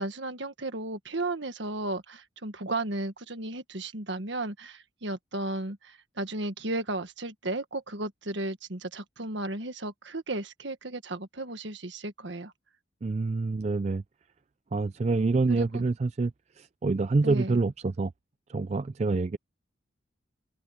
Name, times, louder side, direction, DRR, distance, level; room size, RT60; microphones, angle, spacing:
voice 1, 0.0-12.5 15.5-15.8 17.2-17.6, right 2 dB, 65° right, 1.6 m, -34 dB
voice 2, 13.0-14.0 14.7-18.1 18.5-19.4, right 3 dB, 35° right, 0.3 m, -27 dB
open air
head